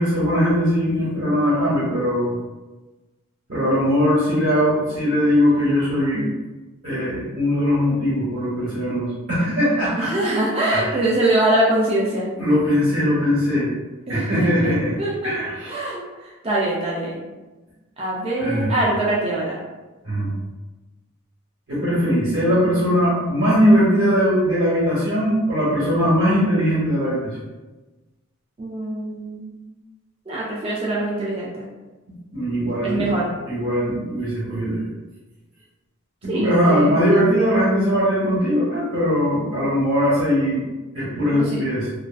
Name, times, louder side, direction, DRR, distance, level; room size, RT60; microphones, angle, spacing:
voice 1, 0.0-2.4 3.5-6.3 6.8-10.1 10.7-11.0 12.4-13.7 14.1-14.9 15.2-15.8 18.4-18.7 20.0-20.3 21.7-27.4 32.3-33.2 33.5-34.9 36.2-40.6 40.9-41.9, equal, 55° right, -8 dB, 0.7 m, -20 dB
voice 2, 9.9-12.3 14.1-17.3 18.0-19.6 28.6-29.6 30.3-31.6 32.8-33.3 36.3-37.0 41.4-41.6, right 1 dB, 25° right, -5 dB, 0.3 m, -23 dB
2.4 x 2.3 x 2.3 m, 1.2 s
head